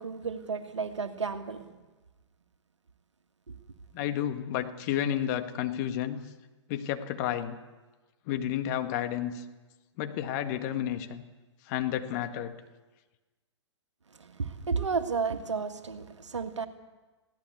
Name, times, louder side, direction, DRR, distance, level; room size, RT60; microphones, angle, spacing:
voice 1, 0.0-1.7 3.5-3.6 14.1-16.7, right 5 dB, 75° right, 8 dB, 1.9 m, -32 dB
voice 2, 3.9-6.2 6.7-7.6 8.3-9.4 10.0-11.2 11.7-12.5, left 10 dB, 35° left, 7 dB, 1.8 m, -31 dB
22.0 x 16.5 x 8.3 m, 1.2 s
figure-of-eight pair, 115°, 15 cm